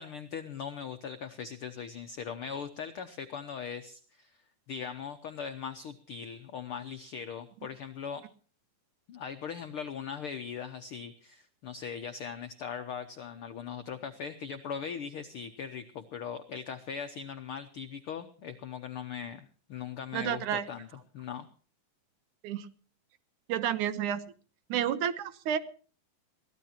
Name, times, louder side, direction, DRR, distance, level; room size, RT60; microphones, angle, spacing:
voice 1, 0.0-4.4 4.7-8.3 9.1-20.9 21.1-21.5, left 7 dB, 75° left, 7 dB, 1.2 m, -40 dB
voice 2, 20.1-20.6 22.4-22.7 23.5-24.2 24.7-25.6, right 9 dB, 75° right, 12 dB, 2.4 m, -30 dB
23.5 x 16.0 x 2.9 m, 0.41 s
omnidirectional pair, 3.7 m